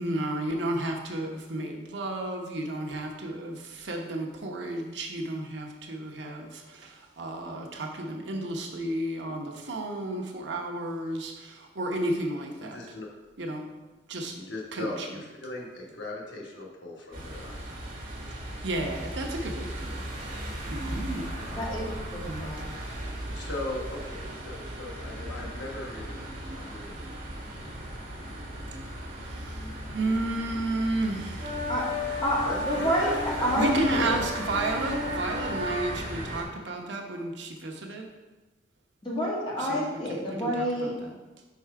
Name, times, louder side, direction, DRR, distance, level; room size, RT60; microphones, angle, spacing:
voice 1, 0.0-12.8 13.4-13.7 14.1-14.4 14.7-15.1 18.3-20.0 20.7-21.4 22.2-22.5 29.2-31.7 33.5-38.1 39.6-41.2, right 1 dB, 75° right, 1 dB, 0.9 m, -32 dB
voice 2, 12.6-13.1 14.3-17.7 19.2-19.4 23.3-26.3 26.6-27.0 32.4-33.5, left 2 dB, 80° left, -2 dB, 1.3 m, -39 dB
sound 1, 17.1-36.4, right 1 dB, 50° right, 1.5 m, -37 dB
voice 3, 21.6-22.7 31.7-31.9 32.2-34.2 39.0-40.9, equal, 25° left, -5 dB, 1.6 m, -29 dB
sound 2, 31.4-35.9, left 2 dB, 30° right, 1.3 m, -35 dB
5.6 x 4.7 x 4.7 m, 1.2 s
head